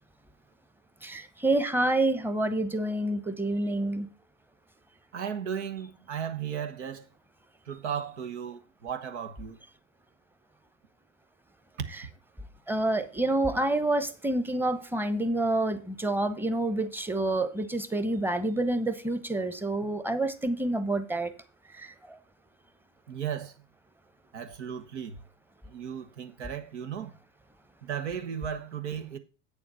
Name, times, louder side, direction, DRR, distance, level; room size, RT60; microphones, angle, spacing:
voice 1, 1.0-4.1 12.7-21.3 21.8-21.9, right 2 dB, 5° right, 1.0 m, -28 dB
voice 2, 5.1-7.1 7.7-9.6 23.1-23.5 24.3-25.2 25.7-27.1 27.8-29.2, right 8 dB, 75° right, 1.3 m, -35 dB
8.4 x 7.1 x 5.5 m
hypercardioid pair, 75°, 35 cm